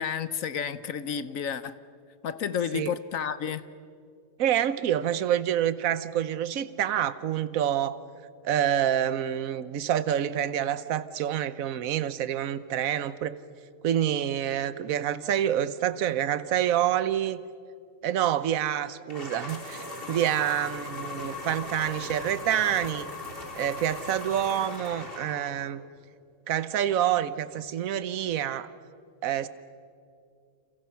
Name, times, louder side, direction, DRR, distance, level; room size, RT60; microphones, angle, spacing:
voice 1, 0.0-1.7 2.2-3.6, left 8 dB, 60° left, 14 dB, 1.1 m, -31 dB
voice 2, 4.4-8.0 8.4-13.3 13.8-17.4 18.0-23.1 23.6-25.8 26.5-28.7 29.2-29.5, right 10 dB, 60° right, 14 dB, 1.2 m, -27 dB
sound 1, 19.1-25.6, left 3 dB, 35° left, 3.3 m, -38 dB
29.5 x 28.5 x 5.8 m, 2.4 s
omnidirectional pair, 1.7 m